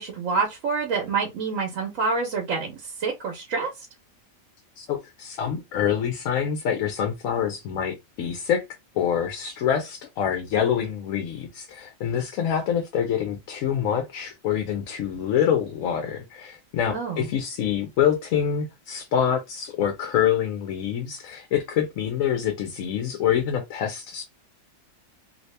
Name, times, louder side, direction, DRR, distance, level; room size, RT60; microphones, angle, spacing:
voice 1, 0.0-3.7 16.9-17.3, right 4 dB, 75° right, 1.1 m, -27 dB
voice 2, 4.8-8.6 8.9-24.3, left 9 dB, 85° left, 1.0 m, -26 dB
2.8 x 2.8 x 3.2 m
omnidirectional pair, 1.4 m